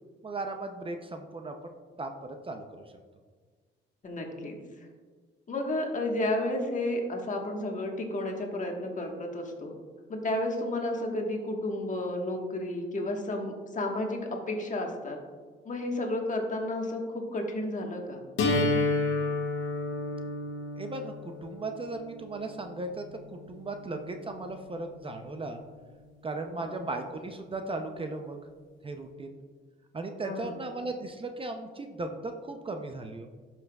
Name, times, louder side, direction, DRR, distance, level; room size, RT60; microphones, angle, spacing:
voice 1, 0.2-1.6 2.0-2.6 20.8-23.2 23.5-25.6 26.2-28.4 28.8-29.4 29.9-33.3, right 2 dB, 25° right, 5 dB, 0.6 m, -36 dB
voice 2, 4.0-4.9 5.5-9.7 10.1-15.2 15.6-18.2 26.6-26.7 30.2-30.5, left 1 dB, 40° left, 2 dB, 1.4 m, -32 dB
sound 1, 18.4-24.3, left 2 dB, 75° left, 1.5 m, -31 dB
11.5 x 5.8 x 2.3 m, 1.5 s
cardioid pair, 90°, 20 cm